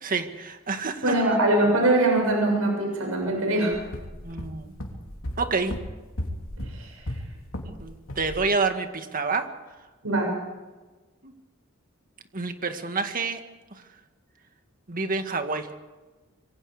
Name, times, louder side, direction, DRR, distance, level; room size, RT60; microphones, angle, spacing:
voice 1, 0.0-1.2 4.2-4.8 5.4-5.8 7.6-9.5 11.2-11.3 12.3-13.4 13.7-13.8 14.9-15.7, right 4 dB, 45° right, 6 dB, 2.0 m, -28 dB
voice 2, 1.0-3.7 6.8-6.9 10.0-10.3, right 2 dB, 90° right, 1 dB, 6.9 m, -22 dB
sound 1, 3.7-7.8 8.1-8.4, left 1 dB, 80° left, 3.4 m, -35 dB
26.5 x 23.0 x 5.0 m, 1.2 s
head